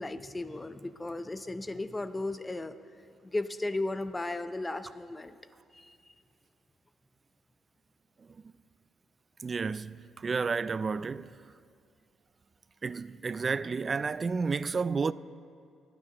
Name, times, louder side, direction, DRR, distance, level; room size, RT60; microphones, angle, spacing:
voice 1, 0.0-2.8 3.2-5.4 5.7-5.9, left 2 dB, 20° left, 0.6 m, -35 dB
voice 2, 9.4-11.3 12.8-15.1, right 5 dB, 35° right, 0.3 m, -31 dB
25.0 x 9.8 x 2.9 m
cardioid pair, 90°, 0 cm